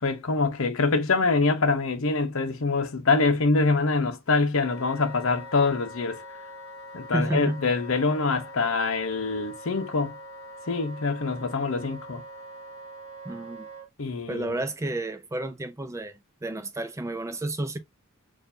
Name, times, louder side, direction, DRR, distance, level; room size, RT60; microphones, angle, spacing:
voice 1, 0.0-6.2 6.9-10.2 10.7-12.2 14.0-14.6, left 3 dB, 65° left, 0.8 m, -25 dB
Wind instrument woodwind instrument, 4.5-13.9, equal, 30° right, 1.1 m, -43 dB
voice 2, 7.1-7.6 13.3-13.7 14.3-16.1 16.4-17.8, right 1 dB, 15° right, 0.3 m, -30 dB
4.4 x 2.6 x 2.6 m
head